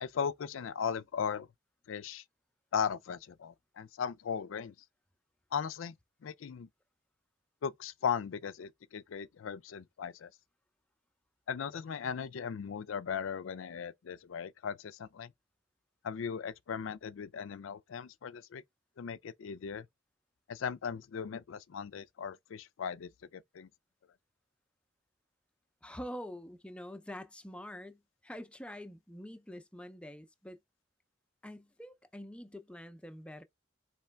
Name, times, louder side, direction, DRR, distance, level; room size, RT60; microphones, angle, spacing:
voice 1, 0.0-1.5 1.9-2.2 2.7-4.7 5.5-5.9 6.2-6.7 7.6-10.3 11.5-15.3 16.0-18.6 19.0-19.9 20.5-23.7, left 7 dB, 85° left, 0.4 m, -37 dB
voice 2, 25.8-30.6 31.4-33.4, equal, 5° left, 0.5 m, -46 dB
4.3 x 3.1 x 3.3 m
head